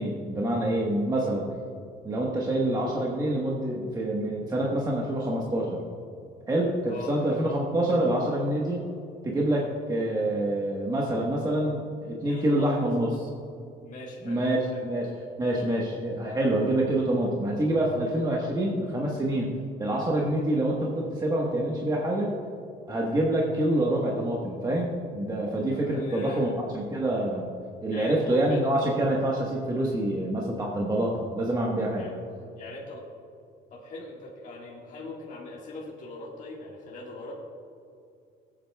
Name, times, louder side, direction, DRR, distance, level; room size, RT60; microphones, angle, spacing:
voice 1, 0.0-1.5 2.0-5.8 6.5-8.8 9.2-13.2 14.2-14.6 14.9-15.1 15.4-19.5 19.8-22.3 22.9-27.5 27.8-32.1, right 1 dB, 20° right, -3 dB, 1.3 m, -26 dB
voice 2, 6.9-7.2 12.2-12.9 13.8-14.4 14.7-14.8 25.7-26.6 27.9-28.7 32.0-32.1 32.5-33.1 33.7-37.3, left 2 dB, 50° left, -4 dB, 1.7 m, -41 dB
16.5 x 8.8 x 2.3 m, 2.4 s
cardioid pair, 110°, 17 cm